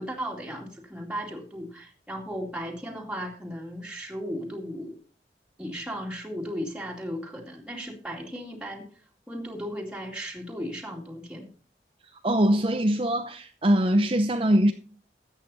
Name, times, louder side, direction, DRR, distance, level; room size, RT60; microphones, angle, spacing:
voice 1, 0.0-5.0 5.6-8.9 9.3-11.5, equal, 5° right, 2.4 m, -36 dB
voice 2, 12.2-14.7, right 1 dB, 30° right, 0.7 m, -22 dB
13.5 x 8.3 x 4.1 m
head